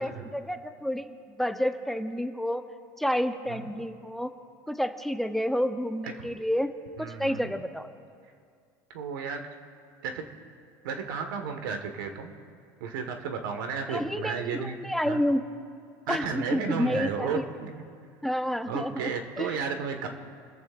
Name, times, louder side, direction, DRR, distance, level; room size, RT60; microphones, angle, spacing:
voice 1, 0.0-2.6 3.0-4.3 4.7-6.7 7.0-7.9 13.9-15.4 16.1-17.4 18.2-19.5, equal, ahead, 7 dB, 0.7 m, -29 dB
voice 2, 7.0-7.5 8.9-9.4 10.0-10.3 10.8-12.3 12.8-14.8 15.1-15.2 16.1-17.8 18.7-20.1, right 6 dB, 85° right, 5 dB, 1.6 m, -33 dB
27.5 x 14.0 x 2.6 m, 2.3 s
supercardioid pair, 105°, 11 cm